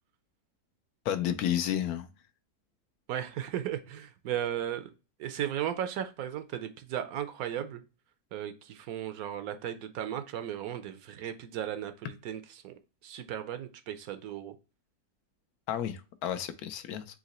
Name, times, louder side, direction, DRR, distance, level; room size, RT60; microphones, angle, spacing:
voice 1, 1.1-2.1 15.7-17.1, left 10 dB, 75° left, 1.1 m, -31 dB
voice 2, 3.1-4.9 5.2-7.8 8.3-12.7 13.0-14.5, right 10 dB, 70° right, 1.0 m, -36 dB
3.8 x 2.9 x 4.0 m
omnidirectional pair, 1.7 m